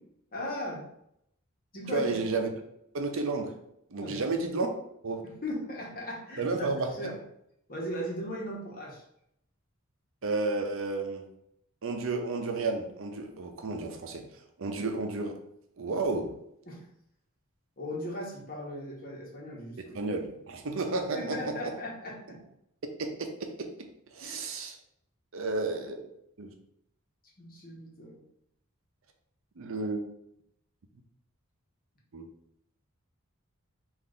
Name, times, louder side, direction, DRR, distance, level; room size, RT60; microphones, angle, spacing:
voice 1, 0.3-0.9 1.7-2.1 4.0-4.5 5.2-6.7 7.0-7.2 7.7-9.0 16.7-16.8 17.8-19.8 21.0-22.4 24.2-24.5 27.4-28.2, equal, 45° left, -3 dB, 1.2 m, -38 dB
voice 2, 1.9-2.5 2.9-3.5 3.9-4.7 5.0-5.2 6.4-7.1 10.2-11.3 11.8-14.3 14.6-15.4 15.8-16.4 19.9-21.7 23.0-24.8 25.3-26.1 26.4-26.5 29.6-30.1 32.1-32.3, right 3 dB, 65° right, 4 dB, 0.6 m, -32 dB
3.8 x 2.6 x 3.8 m, 0.75 s
head